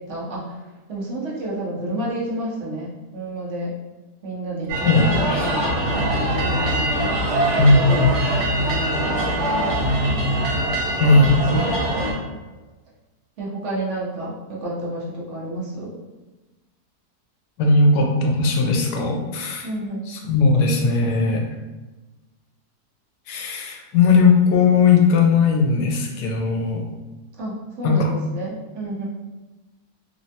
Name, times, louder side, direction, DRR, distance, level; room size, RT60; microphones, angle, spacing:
voice 1, 0.1-0.4 0.9-3.7 4.2-6.9 7.7-9.9 13.4-15.9 19.6-20.1 27.4-29.1, right 1 dB, 55° right, -5 dB, 1.0 m, -30 dB
sound 1, 4.7-12.1, right 1 dB, 80° right, 1.3 m, -22 dB
voice 2, 4.8-5.5 7.6-8.1 11.0-11.6 17.6-19.7 20.1-21.4 23.3-26.8 27.8-28.1, left 3 dB, 85° left, 1 dB, 1.1 m, -18 dB
3.3 x 2.1 x 2.7 m, 1.2 s
omnidirectional pair, 1.7 m